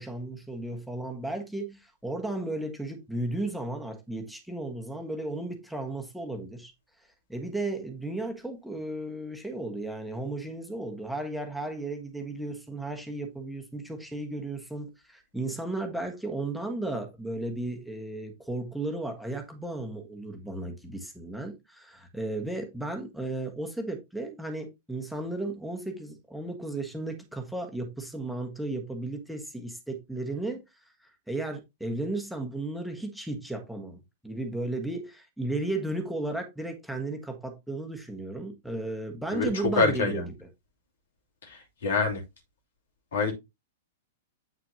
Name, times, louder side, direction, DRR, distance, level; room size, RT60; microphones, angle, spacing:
voice 1, 0.0-6.7 7.3-34.0 34.2-40.2, right 2 dB, ahead, 1.5 m, -34 dB
voice 2, 39.3-40.3 41.4-42.2 43.1-43.3, left 3 dB, 65° left, 3.0 m, -26 dB
8.5 x 5.8 x 2.8 m
figure-of-eight pair, 105°, 0 cm